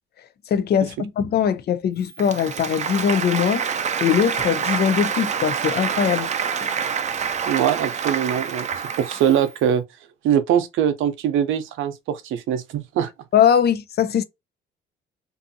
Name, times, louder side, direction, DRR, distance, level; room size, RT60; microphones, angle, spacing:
voice 1, 0.5-3.6 4.0-6.3 13.3-14.2, left 8 dB, 55° left, 0.4 m, -21 dB
Applause, 2.1-9.5, right 7 dB, 35° right, 0.4 m, -26 dB
voice 2, 7.5-8.7 9.0-9.8 10.2-13.1, right 9 dB, 85° right, 0.5 m, -22 dB
2.6 x 2.3 x 2.5 m
cardioid pair, 90°, 20 cm